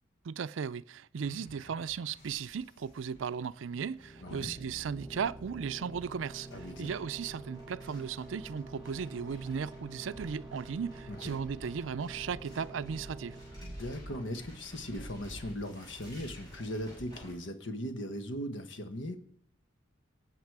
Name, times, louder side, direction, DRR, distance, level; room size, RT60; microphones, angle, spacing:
voice 1, 0.2-6.5 6.8-13.4, right 6 dB, 70° right, 0.4 m, -36 dB
sound 1, 1.2-3.3, left 1 dB, 40° left, 1.3 m, -56 dB
sound 2, 2.1-17.3, equal, 20° left, 5.8 m, -51 dB
sound 3, 3.8-15.2, right 2 dB, 5° right, 1.1 m, -48 dB
voice 2, 4.2-4.5 6.5-6.9 11.1-11.3 13.6-19.2, equal, 65° left, 1.3 m, -39 dB
18.5 x 8.0 x 4.8 m
head